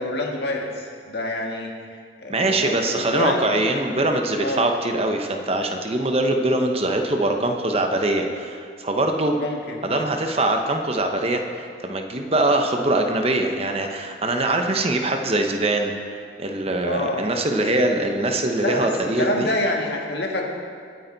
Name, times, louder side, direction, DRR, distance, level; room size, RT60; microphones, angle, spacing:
voice 1, 0.0-1.9 2.2-3.4 4.4-4.7 9.4-9.8 16.8-17.2 18.5-18.9 19.2-20.6, left 1 dB, 55° left, 0 dB, 1.9 m, -27 dB
voice 2, 2.3-9.4 9.8-19.5, right 2 dB, 30° right, 4 dB, 0.9 m, -23 dB
24.5 x 8.9 x 4.0 m, 2.2 s
head